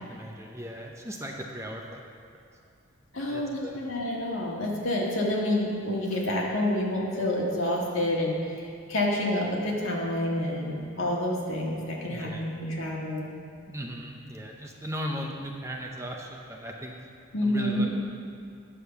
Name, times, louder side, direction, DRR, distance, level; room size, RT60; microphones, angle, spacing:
voice 1, 0.1-2.1 3.3-3.8 12.1-12.4 13.7-16.9 17.4-17.9, equal, 15° right, 0 dB, 0.7 m, -37 dB
voice 2, 3.1-13.3 17.3-17.8, left 1 dB, 75° left, -2 dB, 1.7 m, -28 dB
9.8 x 5.3 x 6.9 m, 2.4 s
head